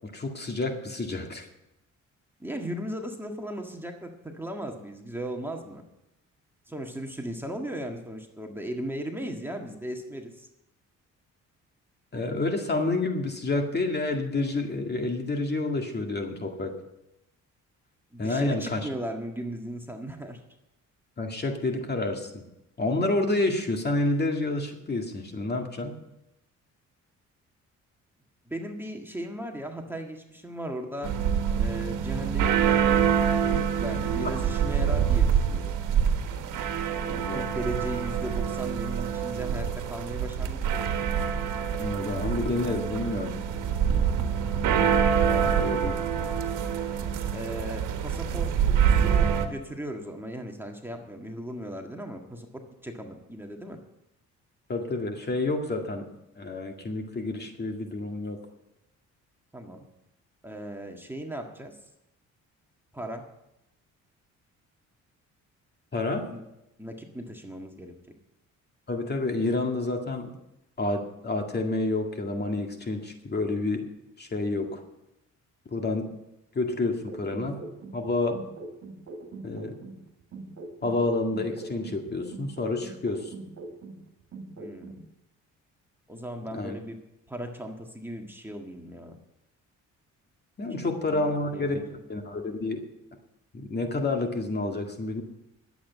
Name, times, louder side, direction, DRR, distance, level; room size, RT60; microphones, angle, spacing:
voice 1, 0.0-1.5 12.1-16.8 18.2-18.8 21.2-22.5 22.8-26.0 37.1-37.5 41.8-43.3 45.6-45.9 54.7-56.1 56.4-58.4 65.9-66.3 68.9-70.3 70.8-73.9 74.2-74.8 75.7-76.1 76.5-77.6 77.9-78.4 79.4-79.8 80.8-83.3 86.5-86.8 90.6-91.8 92.1-92.9 93.5-95.2, left 2 dB, 35° left, 3 dB, 2.0 m, -29 dB
voice 2, 2.4-5.8 6.7-10.5 18.1-20.4 28.5-31.1 31.6-35.7 37.3-40.6 45.3-45.6 47.3-53.8 59.5-59.8 60.4-61.8 62.9-63.2 66.3-66.4 66.8-67.9 84.6-85.0 86.1-87.0 87.3-89.2 90.8-92.0, right 1 dB, 5° right, 2 dB, 1.7 m, -37 dB
sound 1, 31.0-49.5, right 8 dB, 80° right, 1.4 m, -26 dB
sound 2, 77.1-80.0 80.3-84.0 84.3-85.0, right 2 dB, 50° right, 2.4 m, -42 dB
11.5 x 8.2 x 8.3 m, 0.88 s
cardioid pair, 90°, 30 cm